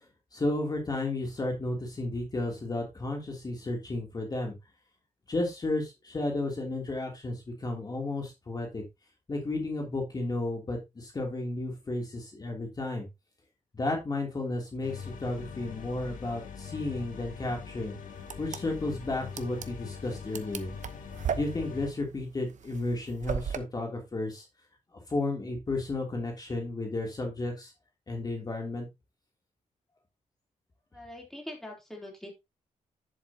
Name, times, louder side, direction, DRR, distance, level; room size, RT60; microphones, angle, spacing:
voice 1, 0.3-4.5 5.3-8.8 9.3-13.1 13.7-17.9 18.4-20.7 21.3-24.4 25.1-27.7 28.1-28.9, left 2 dB, 30° left, 1 dB, 2.9 m, -33 dB
sound 1, 14.8-21.9, left 6 dB, 75° left, 2.2 m, -42 dB
sound 2, 18.2-23.6, right 7 dB, 65° right, 0.9 m, -37 dB
voice 2, 30.9-32.3, left 1 dB, 5° left, 0 dB, 3.3 m, -43 dB
10.5 x 7.2 x 2.8 m, 0.22 s
wide cardioid pair, 125°, 14 cm